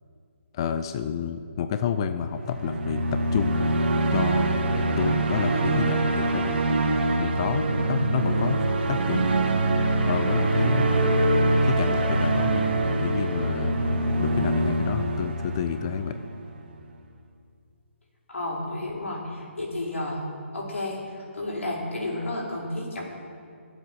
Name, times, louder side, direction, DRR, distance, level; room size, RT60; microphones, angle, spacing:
voice 1, 0.5-3.7 4.1-4.6 5.0-6.5 7.2-8.6 8.9-9.4 10.0-10.9 11.6-13.8 14.2-16.2, left 8 dB, 20° left, 9 dB, 0.4 m, -30 dB
sound 1, 2.3-16.5, right 2 dB, 45° right, 1.8 m, -24 dB
voice 2, 18.3-20.2 20.5-23.0, left 1 dB, 80° left, -2 dB, 4.8 m, -31 dB
22.0 x 8.0 x 6.3 m, 2.3 s
hypercardioid pair, 170°, 7 cm